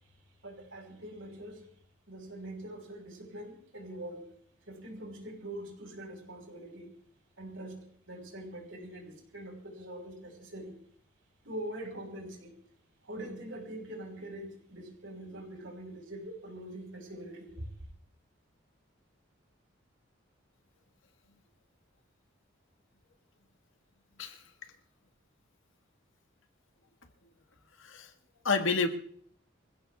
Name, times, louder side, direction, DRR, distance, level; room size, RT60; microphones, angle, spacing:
voice 1, 0.4-1.6 2.1-4.3 4.7-6.9 7.4-10.8 11.4-12.5 13.0-17.7, right 1 dB, 75° right, 5.9 m, -43 dB
voice 2, 27.8-28.1 28.4-28.9, left 4 dB, 75° left, 1.7 m, -29 dB
25.5 x 15.5 x 3.6 m
head